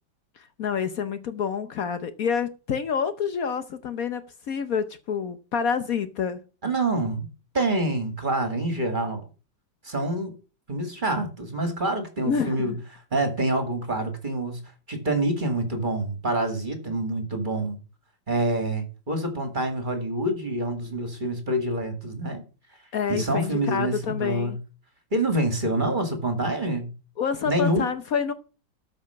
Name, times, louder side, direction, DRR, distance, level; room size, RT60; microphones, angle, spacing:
voice 1, 0.4-6.4 12.2-12.8 22.9-24.6 27.2-28.3, left 6 dB, 60° left, 1.2 m, -28 dB
voice 2, 6.6-7.3 7.5-9.2 9.8-10.4 10.7-14.6 14.9-17.8 18.3-22.4 23.1-24.5 25.1-26.9 27.4-27.9, right 1 dB, 30° right, 2.3 m, -26 dB
13.5 x 5.4 x 5.8 m
omnidirectional pair, 1.8 m